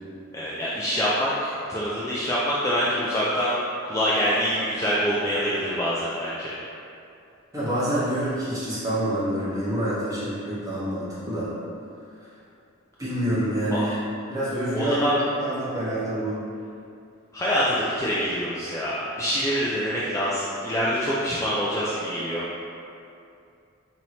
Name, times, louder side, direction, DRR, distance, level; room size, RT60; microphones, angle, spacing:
voice 1, 0.3-3.6 3.8-6.5 13.7-13.9 14.7-15.2 17.3-22.4, equal, 15° left, -8 dB, 0.3 m, -25 dB
voice 2, 7.5-11.5 13.0-14.0 14.3-16.4, right 1 dB, 15° right, -12 dB, 1.2 m, -27 dB
4.7 x 2.7 x 2.9 m, 2.5 s
head